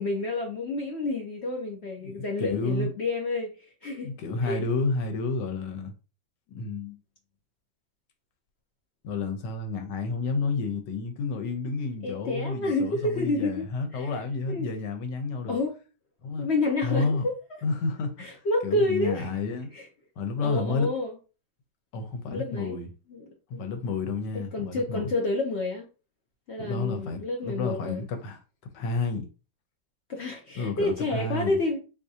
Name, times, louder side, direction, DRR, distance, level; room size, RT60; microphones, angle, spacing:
voice 1, 0.0-3.5 3.8-4.6 12.0-13.7 13.9-14.1 14.5-14.7 15.5-15.8 16.4-17.3 18.2-19.3 19.7-19.8 20.4-21.1 22.3-22.7 23.1-23.6 24.5-25.9 26.5-28.1 30.1-31.8, left 2 dB, 60° left, 0.7 m, -29 dB
voice 2, 2.0-2.9 4.0-5.9 6.5-7.0 9.0-15.6 16.2-16.5 16.8-17.3 17.6-19.7 20.2-20.9 21.9-22.9 23.5-25.1 26.6-28.4 28.7-29.3 30.6-31.6, left 4 dB, 85° left, 1.4 m, -30 dB
3.6 x 3.0 x 2.7 m
omnidirectional pair, 1.8 m